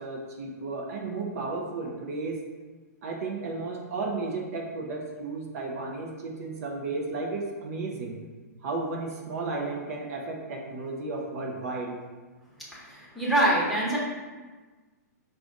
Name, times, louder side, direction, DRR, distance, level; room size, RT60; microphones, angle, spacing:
voice 1, 0.0-2.4 3.0-8.2 8.6-12.0, right 3 dB, 60° right, 0 dB, 0.7 m, -33 dB
voice 2, 12.7-14.0, right 1 dB, ahead, -8 dB, 1.0 m, -25 dB
5.1 x 2.5 x 3.7 m, 1.3 s
hypercardioid pair, 145°, 9 cm